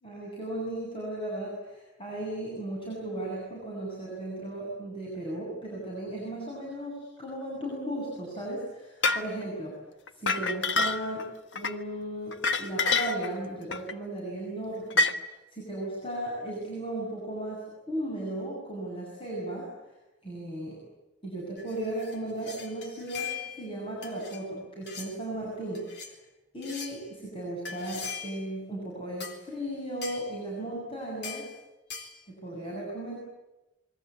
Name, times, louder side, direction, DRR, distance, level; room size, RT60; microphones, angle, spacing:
voice 1, 0.0-9.7 10.1-11.3 11.5-19.7 20.2-20.8 21.2-26.1 26.5-31.5 32.3-33.2, right 1 dB, 30° left, -4 dB, 8.0 m, -36 dB
sound 1, 9.0-9.3 10.1-11.2 11.5-11.7 12.3-13.3 13.7-13.9 14.9-15.1, left 3 dB, 80° left, 1.4 m, -26 dB
sound 2, 21.6-23.7 24.0-24.4 24.9-25.1 25.7-26.1 26.6-27.0 27.6-28.5 29.2-29.4 30.0-30.3 31.2-31.5 31.9-32.2, left 7 dB, 65° left, 4.1 m, -40 dB
27.5 x 22.0 x 8.7 m, 1.0 s
head